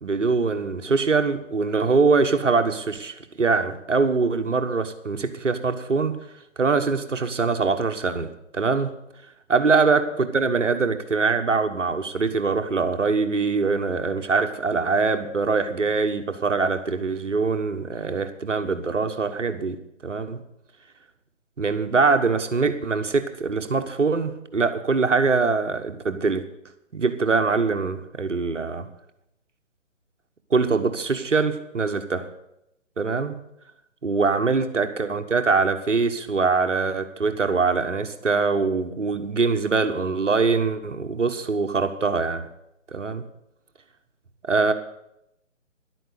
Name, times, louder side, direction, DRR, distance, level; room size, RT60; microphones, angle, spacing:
voice 1, 0.0-6.1 6.6-9.0 9.5-20.4 21.6-26.4 26.9-28.9 30.5-32.3 33.0-33.4 34.0-42.5 42.9-43.2 44.5-44.7, right 4 dB, 70° right, 8 dB, 1.3 m, -23 dB
11.5 x 9.2 x 6.7 m, 0.82 s
figure-of-eight pair, 145°, 37 cm